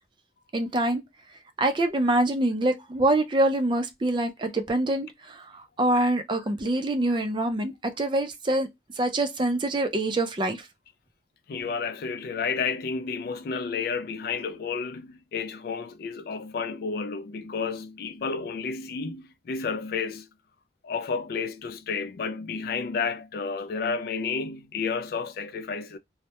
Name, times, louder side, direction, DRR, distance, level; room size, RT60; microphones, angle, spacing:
voice 1, 0.5-1.0 1.6-8.7 9.0-10.6, right 1 dB, 25° right, 0.4 m, -25 dB
voice 2, 11.5-20.3 20.8-26.0, left 5 dB, 55° left, 0.3 m, -31 dB
2.2 x 2.1 x 2.7 m
head